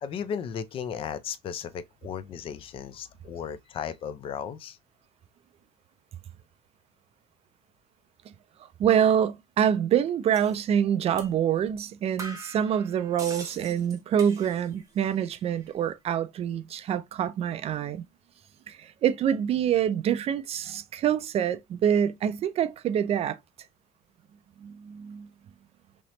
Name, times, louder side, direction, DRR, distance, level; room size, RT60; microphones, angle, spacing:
voice 1, 0.0-4.8, left 8 dB, 35° left, 0.4 m, -35 dB
voice 2, 8.8-18.0 18.7-23.4 24.6-25.3, right 9 dB, 40° right, 0.4 m, -26 dB
sound 1, 10.3-10.6 11.2-11.3 11.7-11.8 12.2-14.8 15.1-15.7, right 3 dB, 20° right, 0.9 m, -43 dB
3.1 x 3.0 x 2.8 m
cardioid pair, 145°, 16 cm